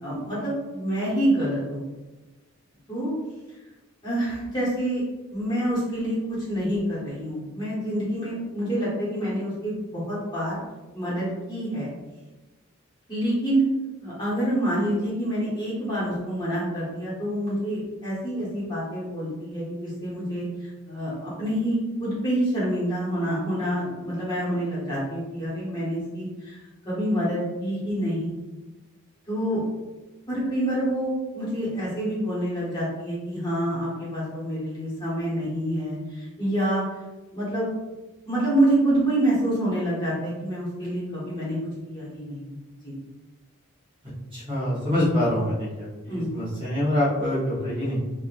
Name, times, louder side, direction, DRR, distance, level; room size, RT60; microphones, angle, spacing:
voice 1, 0.0-1.8 2.9-3.1 4.0-5.0 5.3-10.6 10.9-11.9 13.1-13.6 14.0-28.3 29.3-29.6 30.3-36.8 37.3-37.7 38.3-41.6 41.9-42.9 46.1-46.3, right 1 dB, 20° left, -9 dB, 1.1 m, -27 dB
voice 2, 44.3-48.0, left 1 dB, 25° right, -9 dB, 0.9 m, -25 dB
3.2 x 2.4 x 2.5 m, 1.1 s
head